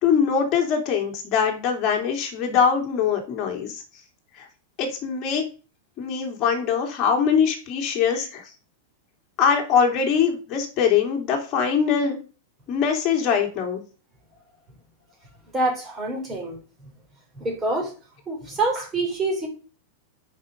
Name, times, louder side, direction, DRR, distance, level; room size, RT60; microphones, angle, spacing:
voice 1, 0.0-3.8 4.4-4.5 4.8-5.5 6.0-8.4 9.4-12.2 12.7-13.8, left 7 dB, 30° left, 2.9 m, -22 dB
voice 2, 15.5-16.9 17.4-17.9 18.3-19.5, right 2 dB, 15° right, 3.3 m, -26 dB
9.6 x 5.2 x 6.7 m
supercardioid pair, 155°, 0 cm